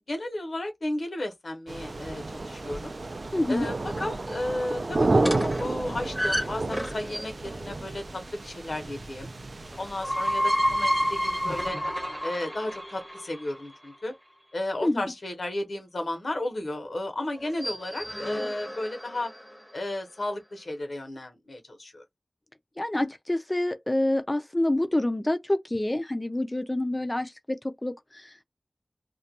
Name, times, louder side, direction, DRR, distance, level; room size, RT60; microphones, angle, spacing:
voice 1, 0.1-2.9 3.5-9.3 9.8-11.8 12.2-14.1 14.5-19.3 19.7-22.0, left 1 dB, 90° left, 0.8 m, -33 dB
sound 1, 1.7-11.7, right 2 dB, 75° right, 0.4 m, -32 dB
voice 2, 3.3-3.7 14.8-15.1 22.8-28.4, left 1 dB, 25° left, 0.3 m, -27 dB
sound 2, 5.2-7.5 9.7-13.7 17.4-19.6, equal, ahead, 0.7 m, -30 dB
2.3 x 2.2 x 2.7 m
wide cardioid pair, 55°, 0 cm